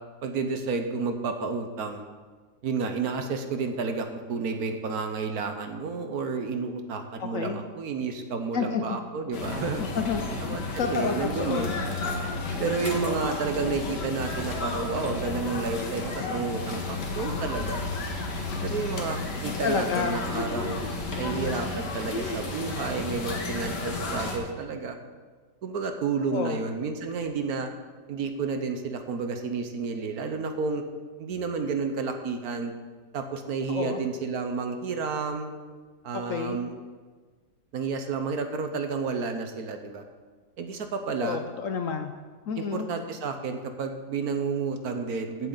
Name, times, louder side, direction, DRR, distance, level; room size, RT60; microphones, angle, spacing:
voice 1, 0.2-2.0 2.6-9.8 10.4-11.7 12.6-17.8 18.6-20.8 21.2-25.0 25.6-27.7 28.1-30.8 31.2-32.7 33.1-35.5 36.0-36.8 37.7-40.0 40.6-41.4 42.6-45.5, right 4 dB, 65° right, 6 dB, 1.3 m, -31 dB
voice 2, 7.2-7.6 8.5-9.0 9.7-10.2 10.5-11.7 19.5-20.2 26.3-26.6 33.7-34.0 36.1-36.6 41.2-42.1 42.5-42.9, left 6 dB, 65° left, 6 dB, 0.9 m, -30 dB
sound 1, 9.3-24.4, left 3 dB, 85° left, 2.1 m, -32 dB
15.5 x 7.8 x 4.0 m, 1.4 s
omnidirectional pair, 1.8 m